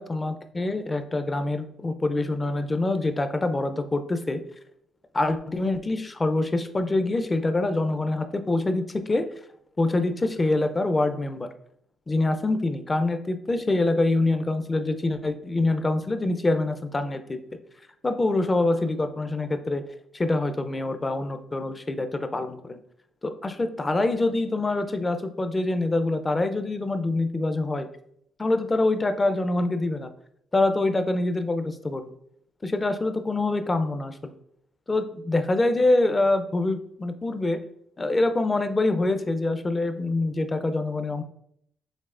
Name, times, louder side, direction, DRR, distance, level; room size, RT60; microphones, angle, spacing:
voice 1, 0.0-4.4 5.1-9.2 9.8-11.5 12.1-17.4 18.0-19.8 20.1-22.8 23.2-27.9 28.4-30.1 30.5-32.1 32.6-34.4 34.9-37.6 38.0-41.2, left 2 dB, 25° left, 9 dB, 0.5 m, -25 dB
5.3 x 3.4 x 2.4 m, 0.70 s
cardioid pair, 90°, 0 cm